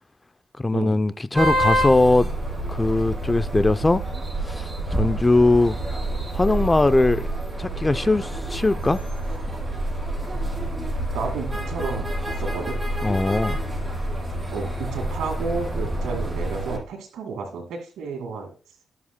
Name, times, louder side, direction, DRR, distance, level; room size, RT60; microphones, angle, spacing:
voice 1, 0.6-2.3 2.7-4.0 4.4-5.8 6.3-7.3 7.6-9.0 13.0-13.6, left 2 dB, 20° left, 0.5 m, -20 dB
sound 1, 1.3-16.8, right 1 dB, 20° right, 5.2 m, -27 dB
voice 2, 11.1-12.8 14.5-18.5, right 4 dB, 85° right, 2.2 m, -32 dB
19.5 x 7.4 x 2.2 m
cardioid pair, 70°, 0 cm